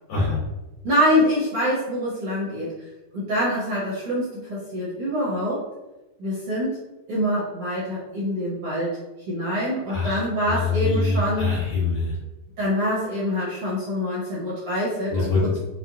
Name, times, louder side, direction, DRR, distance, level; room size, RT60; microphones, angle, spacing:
voice 1, 0.1-0.4 9.9-12.2 15.1-15.6, left 4 dB, 65° left, -7 dB, 2.8 m, -24 dB
voice 2, 0.8-5.7 6.2-6.8 7.1-9.0 9.3-11.5 12.6-15.3, equal, 65° right, -7 dB, 1.5 m, -25 dB
5.9 x 2.2 x 2.4 m, 1.0 s
omnidirectional pair, 3.5 m